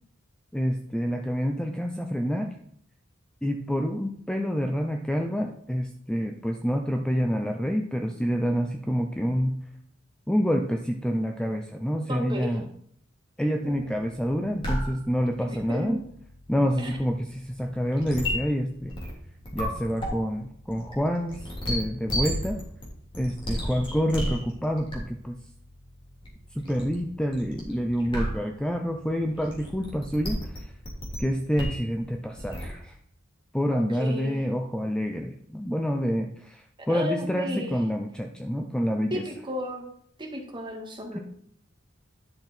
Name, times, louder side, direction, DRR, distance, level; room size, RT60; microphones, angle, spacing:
voice 1, 0.5-2.5 3.4-9.6 10.3-12.7 13.4-16.0 16.5-18.9 19.5-22.6 23.2-25.4 26.5-30.7 31.2-32.9 33.5-39.2 41.1-41.2, equal, 5° left, 3 dB, 0.6 m, -27 dB
voice 2, 12.1-12.6 13.6-14.0 15.4-16.0 16.8-16.9 33.7-34.3 36.9-37.7 39.1-39.8 40.2-41.2, equal, 25° right, 0 dB, 1.9 m, -34 dB
sound 1, 14.3-32.7, equal, 25° left, 3.0 m, -35 dB
10.5 x 6.0 x 4.4 m, 0.64 s
head